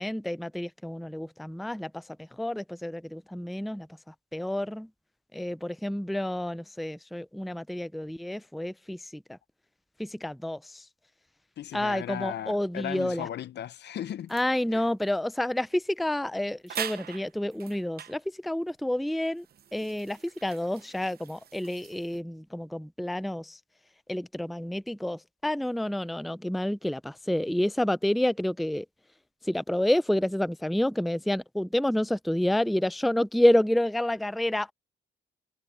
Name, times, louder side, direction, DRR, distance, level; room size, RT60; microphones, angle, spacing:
voice 1, 0.0-4.9 5.3-9.4 10.0-10.9 11.7-13.3 14.3-19.5 19.7-23.6 24.1-28.9 29.4-34.7, left 1 dB, ahead, 0.5 m, -29 dB
voice 2, 11.6-14.3 14.7-14.8, left 11 dB, 60° left, 0.7 m, -36 dB
sound 1, 14.3-14.5 15.7-15.9 16.1-16.2 16.7-18.2 18.9-22.2, right 9 dB, 50° right, 0.9 m, -41 dB
cardioid pair, 90°, 20 cm